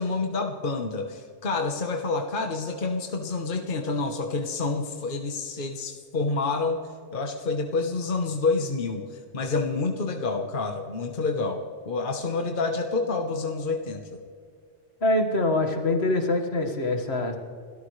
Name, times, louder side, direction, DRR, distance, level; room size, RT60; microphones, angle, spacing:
voice 1, 0.0-6.8 7.1-14.2, left 3 dB, 50° left, 3 dB, 1.3 m, -28 dB
voice 2, 15.0-17.4, left 2 dB, 70° left, 3 dB, 2.0 m, -24 dB
29.5 x 13.5 x 3.2 m, 2.3 s
omnidirectional pair, 1.1 m